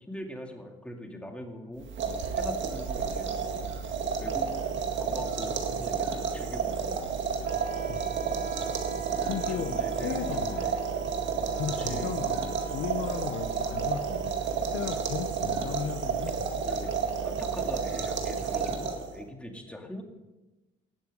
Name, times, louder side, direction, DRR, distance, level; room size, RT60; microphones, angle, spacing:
voice 1, 0.1-1.9 2.3-3.6 4.2-4.5 5.0-7.0 9.1-10.8 11.7-12.2 16.7-16.9 17.2-20.0, equal, 5° left, 2 dB, 2.2 m, -42 dB
sound 1, 1.8-19.2, right 6 dB, 70° right, 1.9 m, -31 dB
Wind instrument woodwind instrument, 7.4-17.4, right 7 dB, 45° right, 1.2 m, -47 dB
voice 2, 9.2-10.8 11.5-16.7 19.8-19.9, left 9 dB, 90° left, 7 dB, 0.9 m, -36 dB
18.5 x 7.2 x 5.4 m, 1.1 s
cardioid pair, 90°, 20 cm